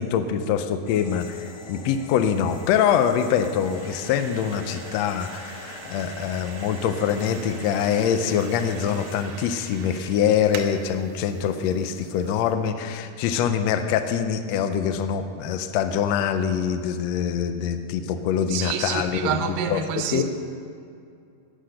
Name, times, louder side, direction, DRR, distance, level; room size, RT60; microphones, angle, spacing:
voice 1, 0.0-19.4 19.7-19.8 20.1-20.2, left 8 dB, 90° left, 1.5 m, -24 dB
sound 1, 0.9-9.2, left 4 dB, 60° left, 1.7 m, -44 dB
sound 2, 2.5-12.5, right 6 dB, 70° right, 1.8 m, -43 dB
voice 2, 18.5-20.2, right 8 dB, 90° right, 2.4 m, -27 dB
11.5 x 10.0 x 6.6 m
omnidirectional pair, 3.8 m